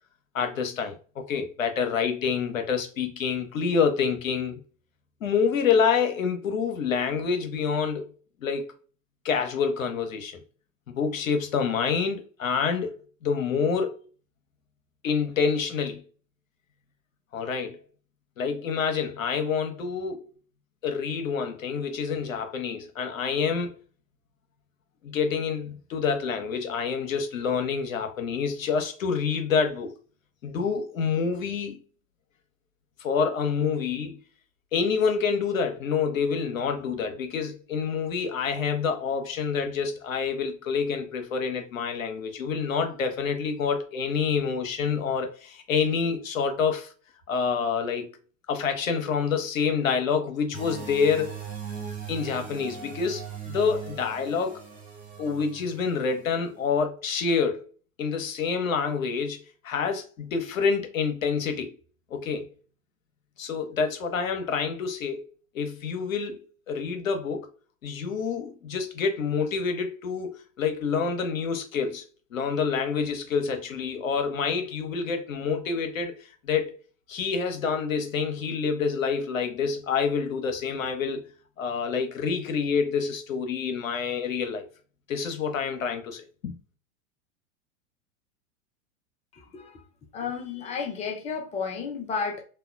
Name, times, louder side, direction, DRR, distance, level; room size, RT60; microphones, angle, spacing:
voice 1, 0.3-4.6 5.2-8.1 8.4-8.7 9.2-10.4 10.9-12.9 13.2-14.0 15.0-16.0 17.3-17.8 18.4-20.2 20.8-23.7 25.0-29.9 30.4-31.8 33.0-34.2 34.7-46.9 47.3-48.1 48.5-51.4 52.1-54.6 55.2-57.6 58.0-61.7 62.1-62.5 63.4-65.2 65.5-66.4 66.7-67.5 67.8-72.0 72.3-76.8 77.1-81.2 81.6-84.6 85.1-86.6, left 6 dB, 80° left, 0.8 m, -27 dB
sound 1, 50.5-56.4, right 7 dB, 20° right, 0.7 m, -40 dB
voice 2, 89.3-89.8 90.1-92.4, left 5 dB, 20° left, 0.4 m, -32 dB
2.8 x 2.2 x 2.3 m
figure-of-eight pair, 90°, 40 cm